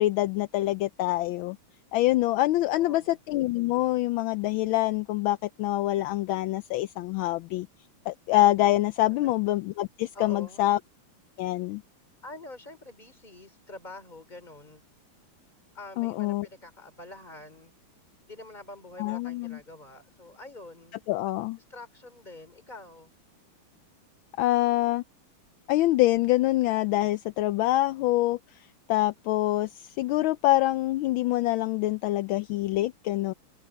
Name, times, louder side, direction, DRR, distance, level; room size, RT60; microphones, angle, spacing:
voice 1, 0.0-1.6 1.9-7.7 8.1-10.8 11.4-11.8 16.0-16.5 19.0-19.6 21.1-21.6 24.4-25.0 25.7-33.3, left 16 dB, 80° left, 1.3 m, -25 dB
voice 2, 2.7-3.2 9.2-9.3 10.1-10.6 12.2-14.8 15.7-17.7 18.3-21.0 21.7-23.1, left 2 dB, 20° left, 4.0 m, -46 dB
omnidirectional pair, 2.3 m